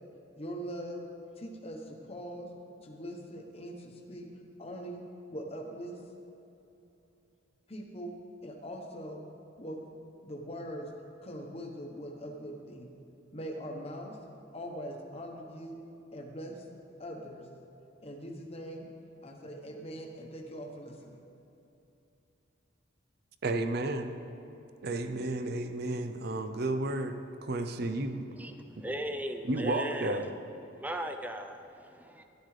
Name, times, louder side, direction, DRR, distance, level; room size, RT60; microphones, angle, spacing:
voice 1, 0.4-1.0 1.4-2.5 2.8-4.3 4.6-5.0 5.3-6.0 7.7-8.1 8.4-9.2 9.6-9.8 10.2-10.9 11.2-12.9 13.3-14.2 14.5-15.8 16.1-16.6 17.0-17.5 18.0-18.9 19.2-21.2, equal, 30° left, 1 dB, 1.1 m, -41 dB
voice 2, 23.4-24.1 24.8-28.2 28.8-28.9 29.4-30.3, right 2 dB, 50° right, 8 dB, 0.6 m, -32 dB
voice 3, 28.4-30.3 30.7-32.2, equal, 10° right, 6 dB, 0.5 m, -38 dB
13.0 x 11.5 x 3.3 m, 2.9 s
head